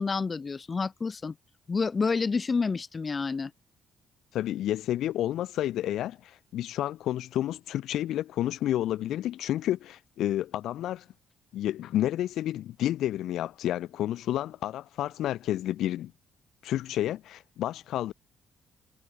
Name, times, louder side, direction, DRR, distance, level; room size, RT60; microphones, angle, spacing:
voice 1, 0.0-1.3 1.7-3.5, left 4 dB, 35° left, 4.4 m, -29 dB
voice 2, 4.3-11.0 11.5-16.1 16.6-18.1, left 13 dB, 80° left, 3.0 m, -30 dB
cardioid pair, 90°, 0 cm